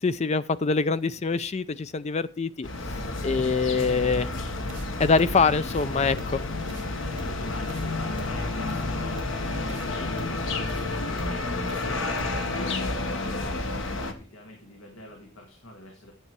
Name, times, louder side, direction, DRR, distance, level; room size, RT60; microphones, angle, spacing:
voice 1, 0.0-2.7 3.2-4.3 5.0-6.4, left 4 dB, 35° left, 14 dB, 0.4 m, -24 dB
sound 1, 2.6-14.1, left 2 dB, 70° left, 1.4 m, -30 dB
sound 2, 4.7-4.9 5.2-5.4 5.7-5.9 6.2-6.4 6.7-6.9 7.2-7.4 7.7-7.9 8.2-8.4 8.7-8.8 9.2-9.4 9.7-9.9 10.2-10.4 10.7-10.9 11.2-11.4 11.7-11.9 12.2-12.4, right 2 dB, 60° right, 0.8 m, -41 dB
voice 2, 7.1-16.1, left 1 dB, 90° left, 2 dB, 2.0 m, -44 dB
10.0 x 7.8 x 4.6 m, 0.35 s
head